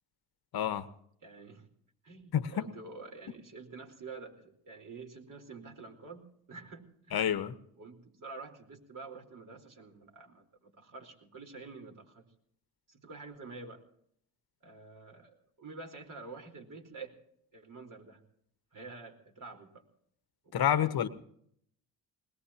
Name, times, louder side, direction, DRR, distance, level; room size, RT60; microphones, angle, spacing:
voice 1, 0.5-0.9 2.3-2.7 7.1-7.5 20.5-21.1, left 9 dB, 55° left, 14 dB, 1.4 m, -28 dB
voice 2, 1.2-1.7 2.0-7.3 7.8-12.2 12.9-13.8 14.6-17.1 17.5-18.2 18.7-19.8 20.4-21.1, right 4 dB, 45° right, 3 dB, 4.4 m, -48 dB
21.0 x 20.5 x 2.9 m, 0.68 s
hypercardioid pair, 50°, 45 cm